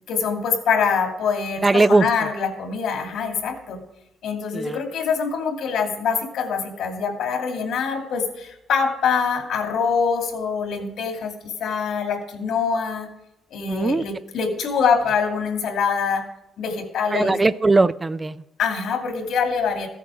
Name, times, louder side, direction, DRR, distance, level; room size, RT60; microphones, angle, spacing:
voice 1, 0.1-3.8 4.2-13.1 13.5-16.2 16.6-17.4 18.6-19.9, left 6 dB, 80° left, 4 dB, 2.4 m, -24 dB
voice 2, 1.6-2.1 4.5-4.8 13.7-14.0 17.1-18.4, right 3 dB, 25° right, 14 dB, 0.4 m, -19 dB
14.0 x 8.4 x 4.9 m, 0.86 s
cardioid pair, 85°, 0 cm